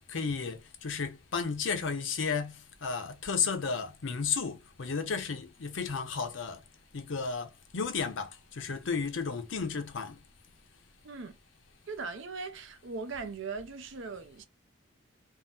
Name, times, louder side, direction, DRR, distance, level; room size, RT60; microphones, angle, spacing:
voice 1, 0.1-2.5 2.8-6.6 6.9-10.2, left 5 dB, 65° left, 0.6 m, -33 dB
voice 2, 11.0-11.4 11.9-14.4, right 4 dB, 65° right, 0.5 m, -39 dB
2.7 x 2.0 x 3.3 m
head